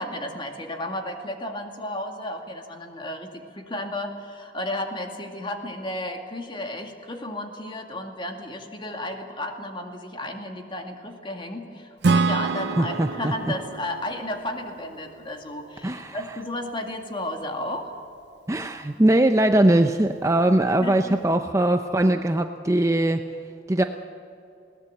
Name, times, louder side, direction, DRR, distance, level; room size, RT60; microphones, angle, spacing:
voice 1, 0.0-17.9 20.8-21.4, left 1 dB, 25° left, 4 dB, 2.1 m, -33 dB
Acoustic guitar / Strum, 12.0-15.6, right 4 dB, 60° right, 0.5 m, -27 dB
voice 2, 12.8-13.3 15.8-16.2 18.5-23.2 23.7-23.8, right 1 dB, 15° right, 7 dB, 0.6 m, -21 dB
21.0 x 18.0 x 7.9 m, 2.7 s
head